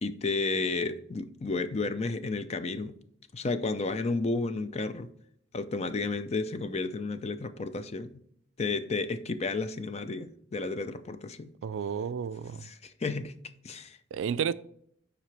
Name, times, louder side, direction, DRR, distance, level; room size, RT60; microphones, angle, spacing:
voice 1, 0.0-2.9 3.3-5.1 5.5-8.1 8.6-11.5 12.6-13.3 13.6-14.0, left 3 dB, 35° left, 0.5 m, -32 dB
voice 2, 11.6-12.7 14.1-14.5, right 7 dB, 75° right, 0.3 m, -31 dB
7.4 x 5.0 x 3.3 m
head